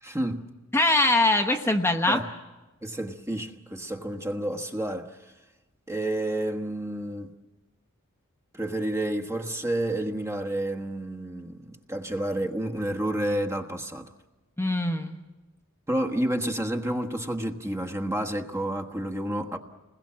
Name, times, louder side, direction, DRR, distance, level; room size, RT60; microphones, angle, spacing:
voice 1, 0.0-0.5 2.0-2.3 2.8-5.2 5.9-7.3 8.5-14.1 15.9-19.6, right 1 dB, 15° right, 1.3 m, -30 dB
voice 2, 0.7-2.2 14.6-15.2, left 2 dB, 10° left, 1.0 m, -22 dB
29.0 x 21.0 x 7.5 m
head